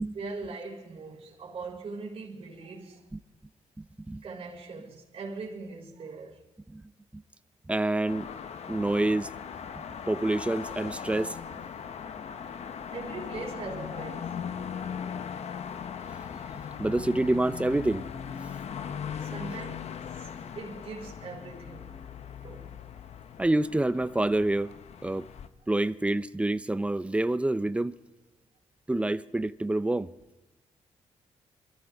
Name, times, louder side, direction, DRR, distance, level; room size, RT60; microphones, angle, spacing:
voice 1, 0.1-3.0 4.2-6.4 12.9-14.4 19.2-20.3 20.5-22.0 22.4-22.7, right 4 dB, 55° right, 3.4 m, -41 dB
voice 2, 7.7-8.3 8.7-9.3 10.1-11.4 16.8-18.0 23.4-24.7 25.0-25.3 25.7-27.9 28.9-30.1, right 2 dB, 10° right, 0.6 m, -27 dB
sound 1, 8.1-25.5, left 7 dB, 60° left, 0.8 m, -39 dB
26.0 x 13.5 x 3.5 m
cardioid pair, 105°, 12 cm